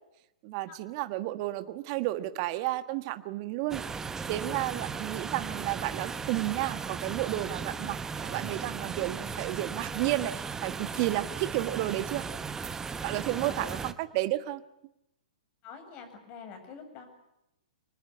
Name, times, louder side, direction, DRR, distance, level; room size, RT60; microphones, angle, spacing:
voice 1, 0.4-3.8 4.3-12.3 13.0-14.6, right 16 dB, 40° right, 11 dB, 1.4 m, -32 dB
sound 1, 3.7-13.9, right 5 dB, 10° right, 1.2 m, -36 dB
voice 2, 13.4-13.8 15.6-17.1, left 6 dB, 35° left, 7 dB, 7.6 m, -46 dB
25.5 x 20.0 x 9.7 m, 0.85 s
hypercardioid pair, 115°, 4 cm